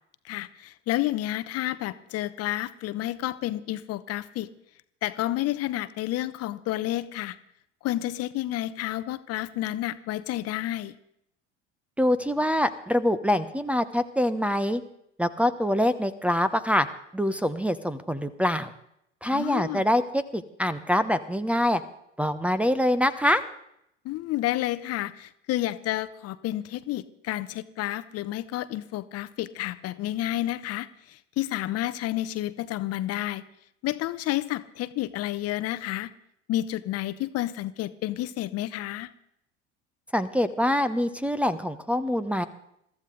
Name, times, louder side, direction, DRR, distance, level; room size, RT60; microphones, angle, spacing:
voice 1, 0.2-4.5 5.0-7.4 7.8-10.9 19.3-19.8 24.0-33.4 33.8-36.1 36.5-39.1, left 15 dB, 40° left, 14 dB, 0.9 m, -30 dB
voice 2, 12.0-14.8 15.2-16.9 17.1-18.7 19.2-21.8 22.2-23.4 40.1-42.5, left 1 dB, 5° right, 7 dB, 0.9 m, -25 dB
22.5 x 14.0 x 3.9 m, 0.75 s
figure-of-eight pair, 70°, 36 cm